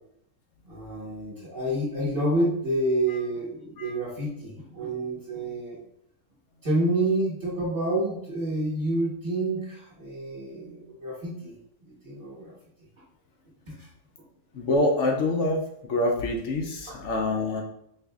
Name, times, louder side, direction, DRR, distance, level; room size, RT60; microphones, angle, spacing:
voice 1, 0.7-5.8 6.6-11.5 11.8-12.5 13.7-13.9 16.9-17.0, right 1 dB, 35° right, -9 dB, 1.3 m, -28 dB
voice 2, 14.5-17.6, left 2 dB, 65° left, 1 dB, 0.8 m, -26 dB
4.6 x 2.6 x 2.3 m, 0.73 s
omnidirectional pair, 1.6 m